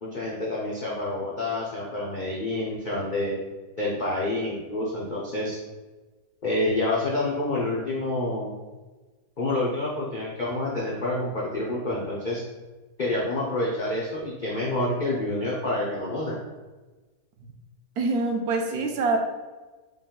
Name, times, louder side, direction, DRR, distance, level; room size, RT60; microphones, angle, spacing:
voice 1, 0.0-3.4 3.8-5.6 6.4-8.5 9.4-12.4 13.0-16.4, left 2 dB, 70° left, -5 dB, 0.4 m, -28 dB
voice 2, 18.0-19.2, right 3 dB, 70° right, 3 dB, 1.1 m, -25 dB
5.0 x 2.3 x 3.6 m, 1.3 s
omnidirectional pair, 1.8 m